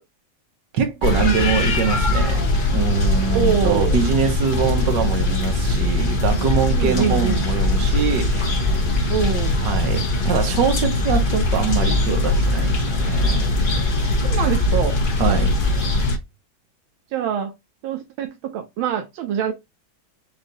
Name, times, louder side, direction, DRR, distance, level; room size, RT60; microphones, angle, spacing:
voice 1, 0.7-8.8 9.6-13.5 15.2-15.5, right 7 dB, 65° right, 1.7 m, -24 dB
sound 1, 1.0-16.2, left 2 dB, 35° left, 0.9 m, -20 dB
voice 2, 3.3-4.0 6.7-7.4 9.1-9.7 14.2-15.0 17.1-17.5 17.8-19.5, right 9 dB, 85° right, 1.5 m, -24 dB
5.0 x 2.7 x 4.0 m
omnidirectional pair, 2.2 m